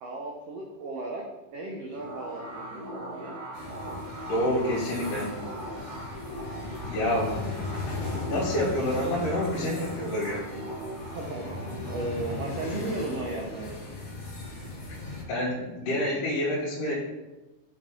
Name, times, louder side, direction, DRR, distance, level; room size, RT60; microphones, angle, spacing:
voice 1, 0.0-1.2 1.5-3.4 11.1-11.4 11.8-13.8, right 2 dB, 85° right, 0 dB, 1.4 m, -35 dB
sound 1, 2.0-15.2, right 1 dB, 60° right, 2.9 m, -40 dB
sound 2, 3.5-15.2, left 2 dB, 45° left, 2.4 m, -38 dB
voice 2, 4.3-5.3 6.8-7.3 8.1-10.5 15.3-16.9, left 1 dB, 80° left, -9 dB, 2.9 m, -28 dB
7.4 x 4.3 x 3.6 m, 1.0 s
omnidirectional pair, 3.8 m